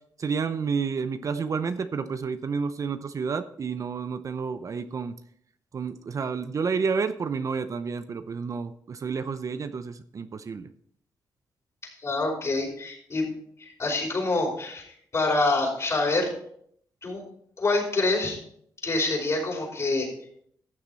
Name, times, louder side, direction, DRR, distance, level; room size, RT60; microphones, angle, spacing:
voice 1, 0.2-5.1 5.7-10.7, right 5 dB, 50° right, 11 dB, 0.7 m, -30 dB
voice 2, 11.8-13.3 13.6-16.3 17.0-17.2 17.6-18.4 18.8-20.1, left 2 dB, 40° left, 0 dB, 4.9 m, -26 dB
14.5 x 7.2 x 4.2 m, 0.66 s
cardioid pair, 75°, 7 cm